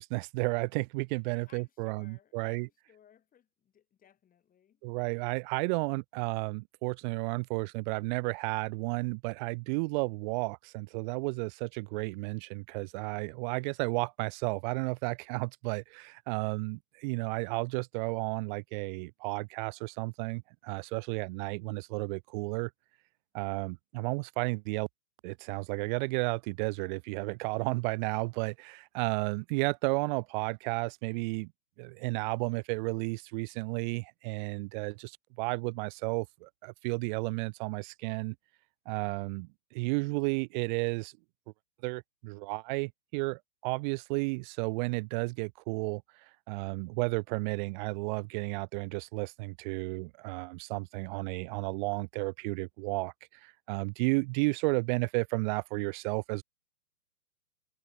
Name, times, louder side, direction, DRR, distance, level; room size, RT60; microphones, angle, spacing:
voice 1, 0.0-2.7 4.8-22.7 23.3-24.9 25.2-31.5 31.8-38.3 38.9-41.1 41.8-46.0 46.5-53.1 53.4-56.4, right 28 dB, 30° right, 1.1 m, -33 dB
voice 2, 1.5-4.8, left 9 dB, 20° left, 6.5 m, -62 dB
hypercardioid pair, 125°, 47 cm